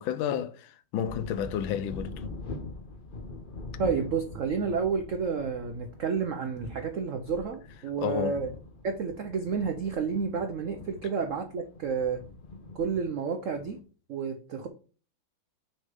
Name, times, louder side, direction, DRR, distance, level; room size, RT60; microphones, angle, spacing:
voice 1, 0.0-2.1 8.0-8.4, left 9 dB, 80° left, 1.4 m, -31 dB
sound 1, 1.1-13.8, left 3 dB, 60° left, 0.5 m, -43 dB
voice 2, 3.8-8.5 8.8-12.2 12.7-13.8 14.1-14.7, right 5 dB, 75° right, 0.7 m, -30 dB
6.5 x 4.2 x 5.1 m
omnidirectional pair, 2.2 m